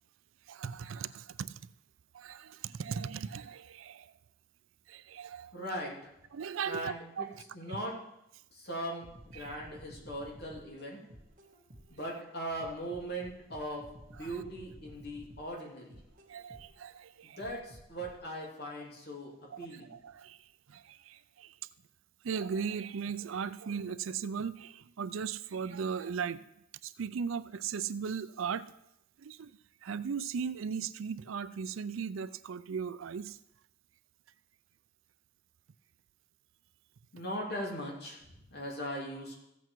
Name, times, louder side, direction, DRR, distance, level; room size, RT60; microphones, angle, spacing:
voice 1, 0.5-1.6 2.1-4.1 4.9-5.5 6.3-7.4 9.3-9.5 16.3-17.4 19.5-20.4 20.7-21.5 22.2-26.5 26.8-28.7 29.2-29.5 29.8-33.4, right 6 dB, 70° right, 15 dB, 0.4 m, -37 dB
voice 2, 5.5-6.1 6.6-7.3 7.5-8.0 8.5-9.1 9.3-11.0 11.9-16.0 17.2-19.9 37.1-39.4, right 1 dB, 50° left, -2 dB, 2.7 m, -39 dB
sound 1, 9.0-12.1 12.6-16.9 17.4-18.2, equal, 40° right, 1.8 m, -54 dB
15.0 x 8.0 x 4.6 m, 0.86 s
head